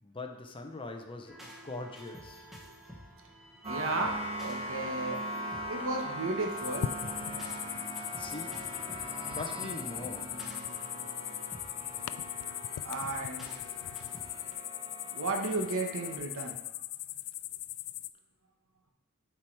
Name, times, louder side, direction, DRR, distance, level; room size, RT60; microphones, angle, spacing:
voice 1, 0.0-2.5 8.2-8.8 9.3-10.4, left 2 dB, 25° left, 4 dB, 0.7 m, -42 dB
sound 1, 1.3-14.5, equal, ahead, 1.0 m, -50 dB
sound 2, 3.6-16.2, right 1 dB, 30° right, 2.2 m, -41 dB
voice 2, 3.7-5.2 5.7-6.9 7.6-7.7 12.8-13.5 15.1-16.6, right 3 dB, 60° right, 3 dB, 1.1 m, -34 dB
sound 3, 6.6-18.1, left 13 dB, 90° left, 0.3 m, -39 dB
7.3 x 4.7 x 4.6 m, 0.89 s
head